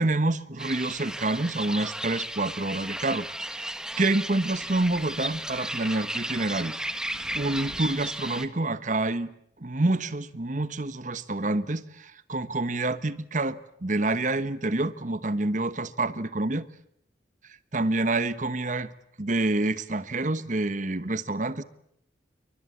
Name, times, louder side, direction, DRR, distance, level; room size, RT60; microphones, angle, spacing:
voice 1, 0.0-3.7 4.0-6.8 7.3-9.3 9.6-16.7 17.7-18.9 19.2-21.6, right 2 dB, 40° right, 1.2 m, -27 dB
sound 1, 0.6-8.5, right 1 dB, 5° right, 1.4 m, -34 dB
29.0 x 23.5 x 8.4 m
head